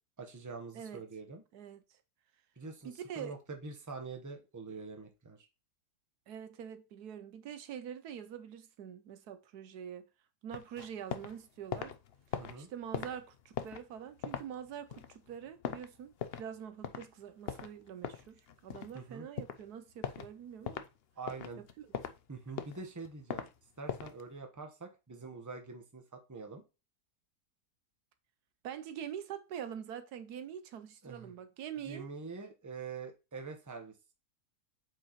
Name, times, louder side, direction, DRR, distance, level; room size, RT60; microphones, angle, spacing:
voice 1, 0.2-1.4 2.6-5.5 12.4-12.7 18.9-19.3 21.2-21.6 22.3-23.5 23.8-26.6 31.0-31.3 31.8-33.9, right 4 dB, 15° right, 1.0 m, -45 dB
voice 2, 1.5-1.8 2.8-3.3 6.3-10.1 10.4-11.9 12.6-20.8 21.6-21.9 28.6-32.1, right 9 dB, 75° right, 1.2 m, -45 dB
sound 1, 10.5-11.4 11.6-16.6 16.8-17.1 17.4-19.0 19.4-19.6 20.0-20.3 20.6-20.9 21.3-22.2 22.5-23.5 23.9-24.2, left 8 dB, 65° left, 0.6 m, -40 dB
8.3 x 4.8 x 3.0 m
omnidirectional pair, 1.7 m